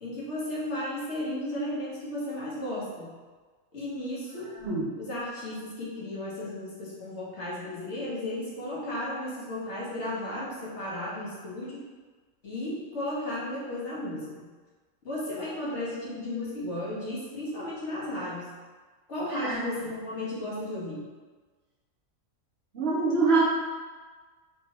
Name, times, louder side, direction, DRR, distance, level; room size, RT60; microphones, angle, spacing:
voice 1, 0.0-3.1 3.7-4.5 5.0-11.8 12.4-14.5 15.0-18.5 19.1-21.1, left 1 dB, 55° left, -7 dB, 1.2 m, -34 dB
voice 2, 22.7-23.4, right 4 dB, 60° right, -5 dB, 0.7 m, -24 dB
3.3 x 2.9 x 2.9 m, 1.4 s
omnidirectional pair, 1.5 m